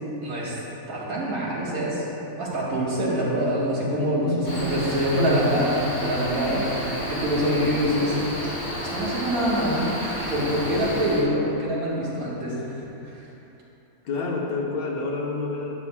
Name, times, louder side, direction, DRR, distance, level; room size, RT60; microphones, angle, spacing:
voice 1, 0.2-0.6 0.9-2.0 2.4-4.3 4.6-6.6 7.1-8.2 8.8-12.6 13.1-13.3, equal, 80° right, -6 dB, 1.9 m, -25 dB
voice 2, 4.2-4.9 6.4-6.7 14.0-15.7, left 3 dB, 80° left, -1 dB, 1.4 m, -29 dB
Cricket, 4.4-11.2, equal, 40° left, 1.9 m, -32 dB
sound 1, 5.7-11.7, left 1 dB, 45° right, 1.6 m, -40 dB
11.0 x 7.0 x 2.3 m, 3.0 s
omnidirectional pair, 1.5 m